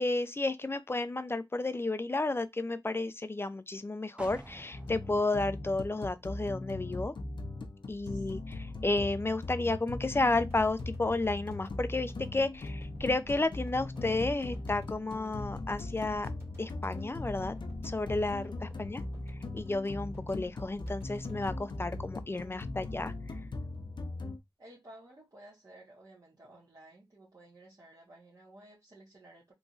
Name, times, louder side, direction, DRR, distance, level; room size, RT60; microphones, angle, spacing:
voice 1, 0.0-7.1 7.9-16.3 16.6-17.5 17.8-19.0 19.5-23.1, left 2 dB, 30° left, 0.4 m, -32 dB
sound 1, 4.2-7.9 8.3-8.4, right 1 dB, 15° right, 0.6 m, -53 dB
sound 2, 4.7-24.4, left 2 dB, 90° left, 0.6 m, -39 dB
voice 2, 8.0-8.3 18.1-18.6 24.6-29.5, right 1 dB, 55° right, 1.4 m, -55 dB
sound 3, 10.5-22.8 23.1-23.2, equal, 35° right, 2.0 m, -54 dB
3.6 x 3.0 x 2.4 m
wide cardioid pair, 80°, 8 cm